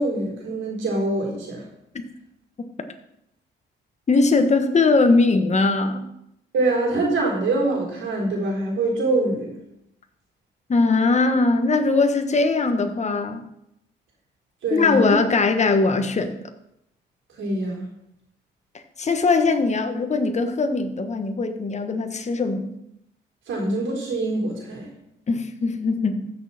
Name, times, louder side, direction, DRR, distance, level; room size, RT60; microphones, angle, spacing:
voice 1, 0.0-1.7 6.5-9.5 14.6-15.1 17.4-17.9 23.5-24.9, right 2 dB, 75° right, -1 dB, 4.1 m, -24 dB
voice 2, 4.1-6.1 10.7-13.4 14.7-16.3 18.7-22.7 25.3-26.3, left 3 dB, 35° left, 7 dB, 1.4 m, -20 dB
15.0 x 6.6 x 4.3 m, 0.80 s
cardioid pair, 90°, 20 cm